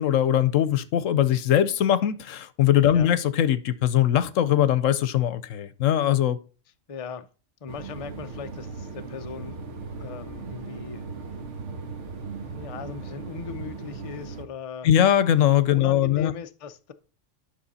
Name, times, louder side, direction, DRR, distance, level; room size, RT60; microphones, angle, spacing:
voice 1, 0.0-6.4 14.8-16.3, left 11 dB, 85° left, 1.1 m, -21 dB
voice 2, 6.9-7.3 7.6-9.6 10.0-11.0 12.5-14.9 15.7-16.9, left 6 dB, 40° left, 0.5 m, -38 dB
sound 1, 7.7-14.4, right 4 dB, 65° right, 1.6 m, -38 dB
11.5 x 6.2 x 4.1 m
omnidirectional pair, 1.3 m